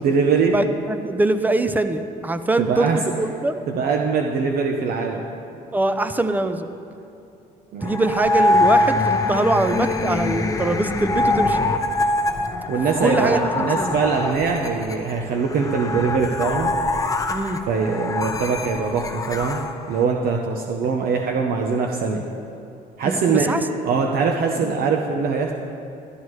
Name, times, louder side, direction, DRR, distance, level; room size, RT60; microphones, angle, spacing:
voice 1, 0.0-0.5 2.6-3.0 3.7-5.2 7.7-8.0 12.7-16.7 17.7-19.6 19.9-22.2 23.0-23.5 23.8-25.5, right 5 dB, 60° right, 2 dB, 0.8 m, -22 dB
voice 2, 0.5-3.6 5.7-6.7 7.8-11.6 13.0-14.0 17.3-17.6 23.0-23.6 24.6-24.7, right 2 dB, 10° right, 10 dB, 0.5 m, -23 dB
sound 1, 7.8-20.1, left 2 dB, 20° left, 0.8 m, -23 dB
12.5 x 12.0 x 3.2 m, 2.8 s
cardioid pair, 110°, 17 cm